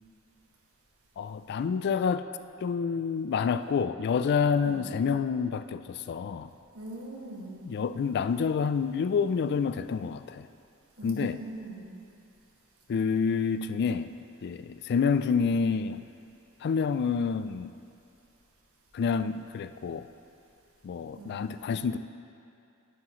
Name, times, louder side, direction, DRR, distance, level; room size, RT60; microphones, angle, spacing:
voice 1, 1.2-2.2 2.6-6.5 7.6-10.5 11.0-11.4 12.9-14.1 14.4-16.0 16.6-17.7 18.9-20.1 20.8-22.0, left 6 dB, 50° left, 12 dB, 0.3 m, -28 dB
voice 2, 6.7-7.6 11.0-11.9 21.2-21.4, right 1 dB, 80° right, -4 dB, 1.8 m, -41 dB
10.0 x 9.7 x 3.0 m, 2.5 s
head